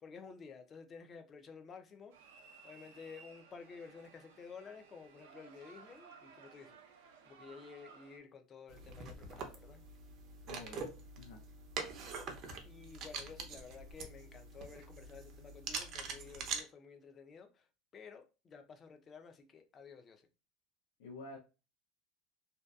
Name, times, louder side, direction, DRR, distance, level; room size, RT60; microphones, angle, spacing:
voice 1, 0.0-2.1 2.6-9.8 12.6-17.7 17.9-20.3, left 5 dB, 30° left, 0.4 m, -53 dB
sound 1, 2.1-8.2, right 5 dB, 90° right, 0.6 m, -58 dB
sound 2, 8.7-16.6, right 5 dB, 50° right, 0.6 m, -44 dB
voice 2, 10.5-10.9 11.2-11.4 21.0-21.4, left 3 dB, 90° left, 0.6 m, -49 dB
2.6 x 2.3 x 2.2 m
supercardioid pair, 125°, 0 cm